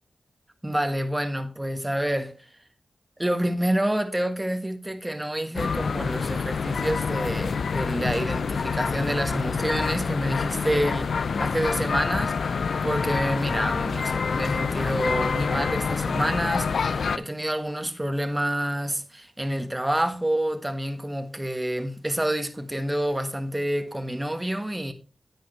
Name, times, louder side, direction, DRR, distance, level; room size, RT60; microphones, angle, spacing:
voice 1, 0.6-2.3 3.2-24.9, right 1 dB, 15° right, 1.4 m, -28 dB
sound 1, 5.5-17.2, left 5 dB, 80° left, 0.4 m, -27 dB
10.0 x 8.7 x 3.2 m
cardioid pair, 50°, 0 cm